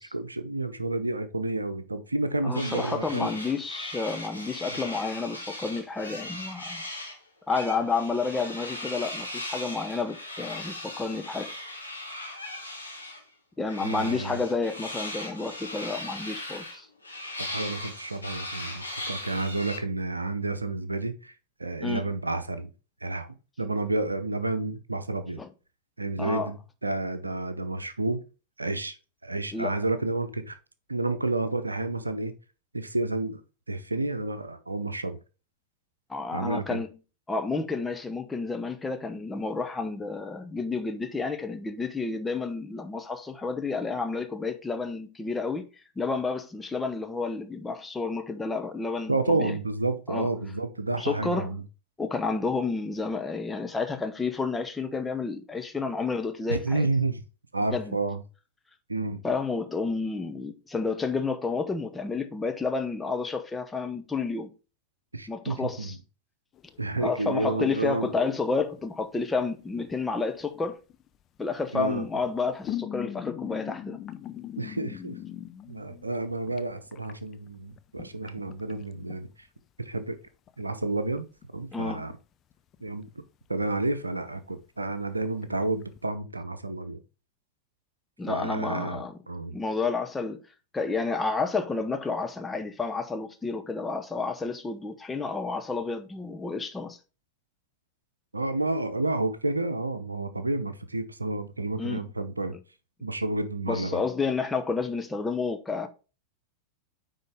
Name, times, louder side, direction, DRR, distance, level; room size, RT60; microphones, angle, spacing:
voice 1, 0.1-3.3 4.7-4.8 13.8-14.4 17.4-21.3 21.6-22.7 23.0-23.3 23.6-25.4 26.0-26.6 26.8-28.2 28.6-29.0 29.2-30.6 30.9-32.3 32.7-33.4 33.7-35.2 36.3-36.8 49.1-51.6 56.5-57.2 57.5-58.2 58.9-59.2 65.1-66.0 66.8-68.1 71.7-72.0 74.6-75.2 75.7-79.3 79.8-80.2 80.6-81.3 81.5-82.1 82.8-83.0 83.5-87.0 88.3-89.5 98.3-102.5 103.0-104.0, right 2 dB, 80° right, 0.8 m, -30 dB
voice 2, 2.4-6.8 7.5-11.5 13.6-16.9 21.8-22.0 25.4-25.5 26.2-26.5 29.5-29.8 36.1-36.9 37.3-45.7 46.0-49.6 50.1-50.3 51.0-51.5 52.0-56.9 57.7-58.0 59.2-64.5 65.3-65.9 67.0-70.8 71.4-74.0 81.7-82.1 88.2-89.1 89.5-90.4 90.7-97.0 101.8-102.0 103.7-105.9, left 4 dB, 10° left, 1.0 m, -30 dB
sound 1, 2.5-7.2 7.5-13.2 13.7-19.8, left 1 dB, 85° left, 1.9 m, -38 dB
sound 2, 66.6-68.8 69.1-71.1 72.1-76.6 76.9-79.2 80.3-80.5 80.8-80.9 81.2-81.7 82.1-82.2 82.5-83.1 83.5-84.0 84.4-84.5 84.9-85.0 85.2-86.0, left 11 dB, 30° left, 0.6 m, -41 dB
9.4 x 3.8 x 3.5 m
figure-of-eight pair, 90°, 0 cm